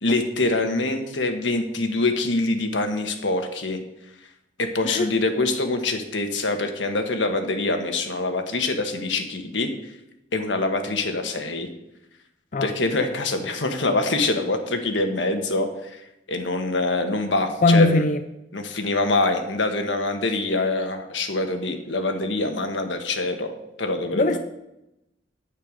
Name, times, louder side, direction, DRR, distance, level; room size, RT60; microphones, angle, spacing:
voice 1, 0.0-3.8 4.6-9.7 10.3-11.7 12.6-16.0 16.3-18.0 18.5-24.4, left 2 dB, 85° left, 5 dB, 1.4 m, -25 dB
voice 2, 17.6-18.2 24.1-24.4, left 2 dB, 45° left, 7 dB, 0.6 m, -19 dB
10.5 x 8.6 x 5.1 m, 0.89 s
head